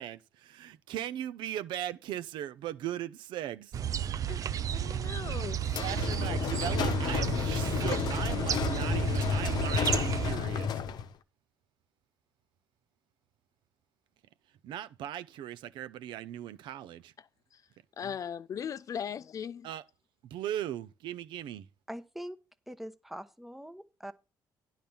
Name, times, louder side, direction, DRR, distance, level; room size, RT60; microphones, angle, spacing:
voice 1, 0.0-3.7 5.8-10.8 14.6-17.1 18.0-18.1 19.6-19.8 20.3-21.7, right 12 dB, 80° right, 0.7 m, -38 dB
sound 1, 3.7-10.4, right 9 dB, 45° right, 0.5 m, -33 dB
voice 2, 4.3-5.6 17.2-17.3 17.5-17.6 18.0-19.7, left 8 dB, 45° left, 0.4 m, -39 dB
sound 2, 5.7-11.1, left 7 dB, 60° left, 0.9 m, -31 dB
voice 3, 21.9-22.4 22.7-24.1, equal, 5° right, 1.0 m, -43 dB
10.5 x 4.0 x 7.1 m
cardioid pair, 115°, 8 cm